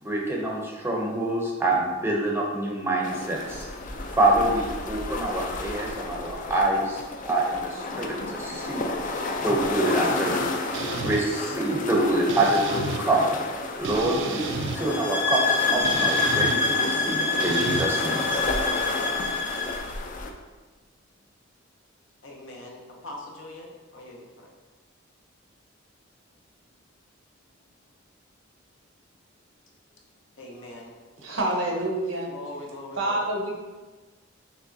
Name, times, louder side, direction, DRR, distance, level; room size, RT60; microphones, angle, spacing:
voice 1, 0.0-3.7 4.2-10.4 11.0-13.3 13.8-18.4, right 1 dB, 10° right, -2 dB, 0.6 m, -26 dB
sound 1, 3.0-20.3, left 3 dB, 45° left, 0.4 m, -32 dB
sound 2, 10.7-11.2 12.3-13.0 13.8-14.8 15.8-16.6 17.4-17.9, right 4 dB, 65° right, 0.4 m, -31 dB
sound 3, 14.8-19.8, left 3 dB, 60° left, 1.5 m, -26 dB
voice 2, 22.2-24.5 30.4-30.9 31.4-31.5 32.3-33.2, left 2 dB, 75° left, -1 dB, 0.8 m, -41 dB
voice 3, 31.2-32.3 33.0-33.5, right 2 dB, 90° right, -1 dB, 0.9 m, -27 dB
6.1 x 3.0 x 2.7 m, 1.3 s
head